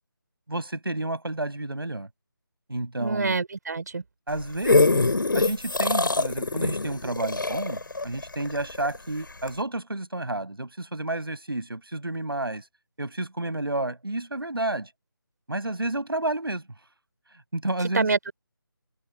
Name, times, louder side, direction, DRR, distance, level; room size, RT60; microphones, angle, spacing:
voice 1, 0.5-2.1 2.7-3.4 4.3-12.7 13.0-14.9 15.5-16.7 17.5-18.1, right 2 dB, 80° right, 6.8 m, -30 dB
voice 2, 3.0-4.0 17.8-18.3, right 4 dB, 50° right, 4.4 m, -26 dB
sound 1, 4.3-9.0 9.5-9.6, left 3 dB, 65° left, 5.3 m, -23 dB
figure-of-eight pair, 160°, 12 cm